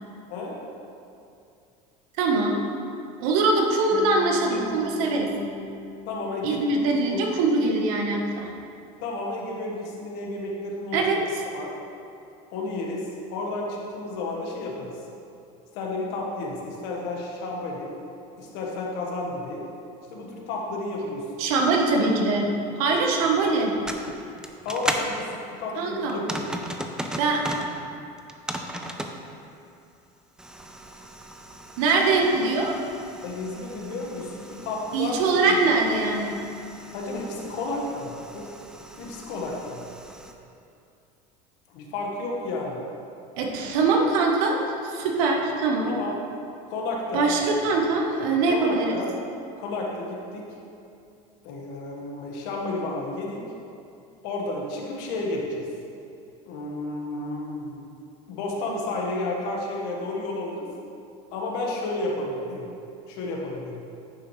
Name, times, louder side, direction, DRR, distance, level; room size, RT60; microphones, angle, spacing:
voice 1, 2.2-2.6 3.2-5.3 6.4-8.5 10.9-11.2 21.4-22.5 22.8-23.7 25.8-26.2 27.1-27.4 31.8-32.8 34.9-36.3 43.4-45.9 47.1-49.0, right 3 dB, 80° right, 1 dB, 1.2 m, -23 dB
Bass guitar, 3.9-8.2, left 3 dB, 25° right, 1.7 m, -40 dB
voice 2, 6.1-7.2 9.0-11.0 11.5-11.7 12.5-14.9 15.7-17.9 18.4-19.6 20.1-21.3 21.6-21.7 24.6-26.5 31.9-32.0 33.2-35.6 36.9-38.5 39.0-39.8 41.7-42.8 45.9-46.2 46.7-47.3 48.5-49.1 49.6-50.5 51.4-53.4 54.2-55.7 56.4-57.9 58.3-60.7 61.3-62.7 63.1-63.8, left 2 dB, 70° left, -1 dB, 1.5 m, -31 dB
sound 1, 23.6-25.1 26.1-27.7 28.2-29.2 30.4-40.3, right 1 dB, 5° right, 0.5 m, -37 dB
9.8 x 6.1 x 3.2 m, 2.6 s
supercardioid pair, 120°, 18 cm